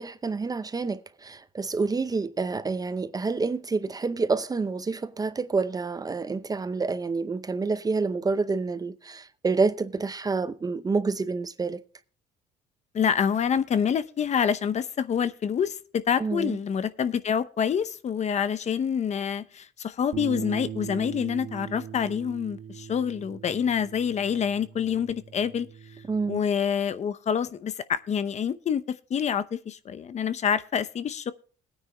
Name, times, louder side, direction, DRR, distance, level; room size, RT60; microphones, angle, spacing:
voice 1, 0.0-11.8 16.2-16.6 26.1-26.4, right 4 dB, 20° right, 0.7 m, -28 dB
voice 2, 12.9-25.7 26.3-31.3, left 7 dB, 40° left, 0.8 m, -27 dB
Bass guitar, 20.1-26.4, right 9 dB, 75° right, 1.6 m, -40 dB
20.5 x 9.6 x 2.3 m
cardioid pair, 110°, 17 cm